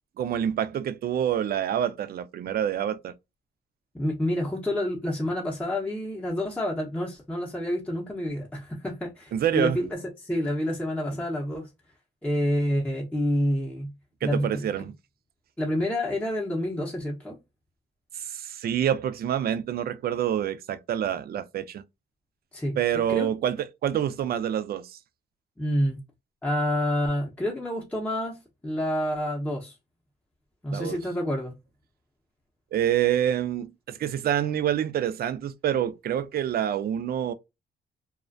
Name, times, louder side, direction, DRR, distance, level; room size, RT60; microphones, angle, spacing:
voice 1, 0.2-3.1 9.3-9.8 14.2-14.9 18.1-21.8 22.8-25.0 30.7-31.0 32.7-37.3, right 10 dB, 50° right, 0.4 m, -27 dB
voice 2, 3.9-9.9 10.2-11.7 12.2-13.9 14.2-14.6 15.6-17.4 22.5-23.3 25.6-26.0 26.4-28.4 28.6-29.8 30.6-31.5, equal, 5° left, 0.7 m, -28 dB
2.4 x 2.1 x 2.4 m
cardioid pair, 90°, 20 cm